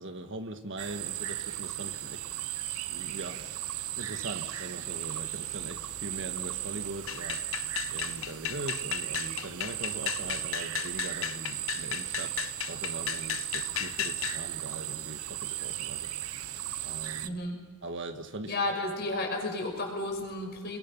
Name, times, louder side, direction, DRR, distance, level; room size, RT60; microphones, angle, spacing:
voice 1, 0.0-2.4 2.9-16.1 16.4-16.5 16.8-17.4 17.8-18.6, right 2 dB, 55° right, 7 dB, 1.8 m, -41 dB
sound 1, 0.8-17.3, right 13 dB, 85° right, 1.0 m, -36 dB
sound 2, 7.1-14.4, left 11 dB, 65° left, 0.7 m, -35 dB
voice 2, 17.2-17.6 18.5-20.8, left 2 dB, 45° left, 2 dB, 5.8 m, -32 dB
30.0 x 22.0 x 5.6 m, 1.3 s
head